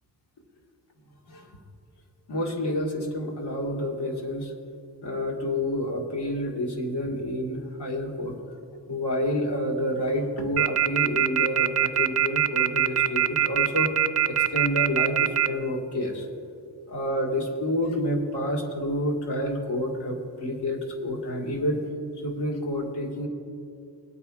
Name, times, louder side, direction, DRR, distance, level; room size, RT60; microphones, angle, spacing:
voice 1, 2.3-4.5 5.0-8.3 8.9-13.9 14.3-16.3 16.9-21.8 22.2-23.3, left 1 dB, 70° left, 0 dB, 1.8 m, -29 dB
sound 1, 10.6-15.5, right 10 dB, 40° right, 0.4 m, -21 dB
22.5 x 8.7 x 2.4 m, 2.5 s
wide cardioid pair, 130°, 42 cm